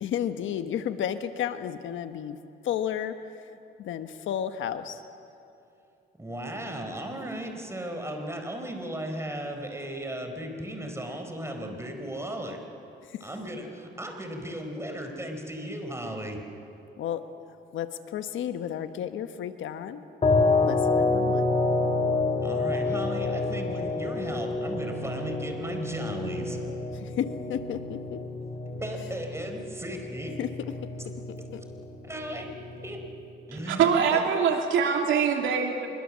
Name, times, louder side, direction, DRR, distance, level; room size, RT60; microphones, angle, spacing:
voice 1, 0.0-2.4 2.6-3.2 3.8-5.0 13.1-13.2 17.0-17.2 17.7-20.0 20.6-21.5 27.0-28.2 30.4-30.5 31.5-31.6, left 9 dB, 75° left, 9 dB, 1.2 m, -32 dB
voice 2, 6.2-12.6 13.2-16.4 22.4-26.6 28.8-30.4 31.0-31.1 32.0-32.5 32.8-33.0 33.5-34.2, right 1 dB, 15° right, 4 dB, 4.5 m, -36 dB
sound 1, 20.2-33.2, left 3 dB, 30° left, 2.6 m, -29 dB
voice 3, 33.7-35.9, right 6 dB, 80° right, 3 dB, 2.8 m, -23 dB
25.5 x 22.5 x 7.4 m, 2.7 s
cardioid pair, 90°, 20 cm